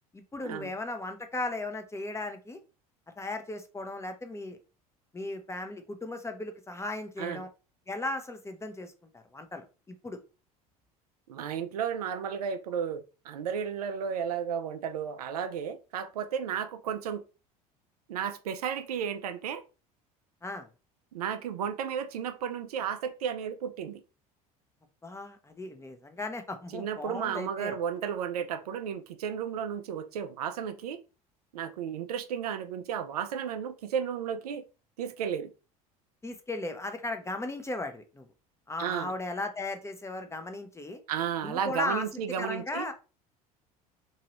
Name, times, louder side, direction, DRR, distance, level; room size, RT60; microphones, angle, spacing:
voice 1, 0.1-2.6 3.2-4.6 5.1-7.5 7.9-10.2 20.4-20.7 25.0-27.8 36.2-38.3 38.7-41.0 41.4-42.9, left 2 dB, 15° left, 0.7 m, -36 dB
voice 2, 11.3-17.2 18.1-19.6 21.1-24.0 26.7-31.0 31.5-34.6 35.0-35.5 38.8-39.1 41.1-42.9, right 8 dB, 85° right, 0.4 m, -33 dB
2.9 x 2.7 x 2.9 m
hypercardioid pair, 75°, 19 cm